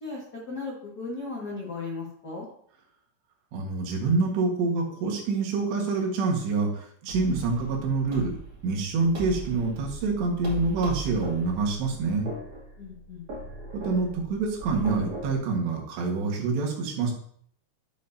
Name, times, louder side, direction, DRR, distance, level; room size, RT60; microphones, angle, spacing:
voice 1, 0.0-2.5 12.8-13.3, left 3 dB, 70° left, -5 dB, 0.9 m, -36 dB
voice 2, 3.5-8.4 8.6-12.3 13.7-17.1, right 4 dB, 85° right, 0 dB, 3.8 m, -26 dB
sound 1, 7.1-15.4, right 2 dB, 40° right, 3.2 m, -39 dB
10.5 x 7.6 x 2.7 m, 0.63 s
omnidirectional pair, 4.9 m